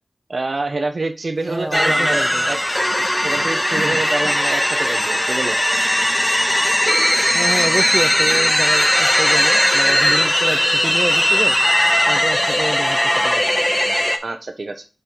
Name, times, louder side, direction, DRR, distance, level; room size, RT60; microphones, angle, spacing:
voice 1, 0.3-2.6 3.2-5.6 14.2-14.8, right 3 dB, 60° right, 1.0 m, -26 dB
sound 1, 1.4-13.0, left 2 dB, 85° left, 1.5 m, -40 dB
voice 2, 1.5-2.4 7.3-11.6 12.1-13.0 13.2-13.4, right 1 dB, 15° right, 0.3 m, -27 dB
sound 2, 1.7-14.2, equal, 15° left, 0.8 m, -18 dB
5.1 x 4.5 x 4.5 m
wide cardioid pair, 75°, 0 cm